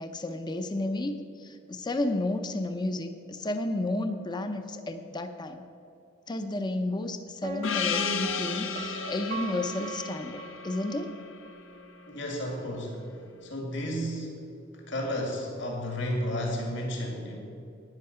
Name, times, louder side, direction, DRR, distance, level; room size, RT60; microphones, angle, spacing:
voice 1, 0.0-5.6 6.3-11.1, left 2 dB, 20° left, 7 dB, 0.6 m, -32 dB
Piano, 7.4-11.2 11.5-11.6, right 6 dB, 45° right, 0.6 m, -40 dB
Gong, 7.6-12.4, left 7 dB, 85° left, 0.7 m, -34 dB
voice 2, 12.1-13.0 13.4-14.4 14.7-17.4, equal, 65° left, 0 dB, 2.1 m, -32 dB
10.5 x 9.4 x 6.8 m, 2.5 s
head